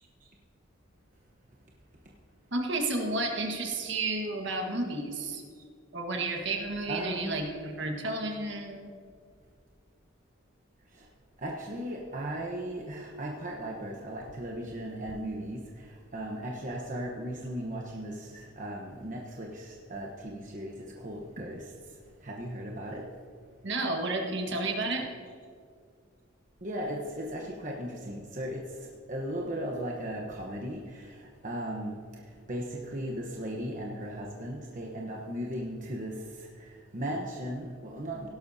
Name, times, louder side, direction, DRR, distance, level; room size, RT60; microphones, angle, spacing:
voice 1, 2.5-5.4 5.9-8.9 23.6-25.1, right 2 dB, 60° right, 2 dB, 1.6 m, -31 dB
voice 2, 6.9-7.4 10.9-11.0 11.4-21.7 22.2-23.0 26.6-32.0 32.5-38.3, right 1 dB, 40° right, -1 dB, 1.0 m, -37 dB
17.0 x 12.0 x 2.8 m, 2.1 s
head